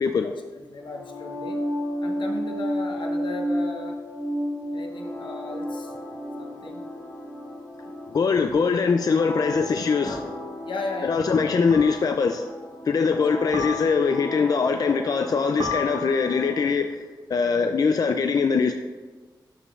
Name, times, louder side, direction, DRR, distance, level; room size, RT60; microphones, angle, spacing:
voice 1, 0.2-1.6 2.0-4.0 4.7-5.9 6.4-6.9 10.0-10.3 10.6-11.3 13.1-13.2, left 3 dB, 80° left, 2 dB, 1.0 m, -36 dB
sound 1, 0.8-16.7, equal, 10° left, 1.6 m, -33 dB
voice 2, 8.1-10.2 11.0-12.5 12.8-17.0 17.3-18.7, left 5 dB, 50° left, 6 dB, 0.3 m, -22 dB
sound 2, 10.1-10.4 11.7-12.3 13.5-14.3 15.6-16.5, left 3 dB, 90° right, 1.3 m, -34 dB
12.0 x 5.1 x 2.4 m, 1.3 s
wide cardioid pair, 135°, 8 cm